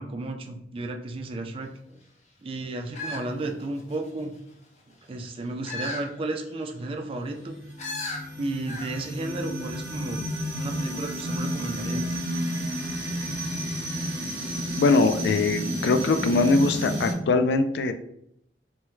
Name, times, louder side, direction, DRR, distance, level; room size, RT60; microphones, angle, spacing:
voice 1, 0.0-2.0 2.4-4.3 5.1-7.5 8.4-10.2 10.5-12.0, right 2 dB, 30° right, 4 dB, 0.3 m, -33 dB
sound 1, 2.9-4.1 5.6-6.1 6.5-6.6 7.8-8.2 8.7-9.0 9.3-9.4, left 2 dB, 40° left, 0.6 m, -35 dB
sound 2, 7.3-17.1, equal, 80° right, 0.8 m, -31 dB
voice 2, 14.8-17.9, left 3 dB, 75° left, 9 dB, 0.3 m, -22 dB
3.3 x 2.2 x 3.0 m, 0.74 s
head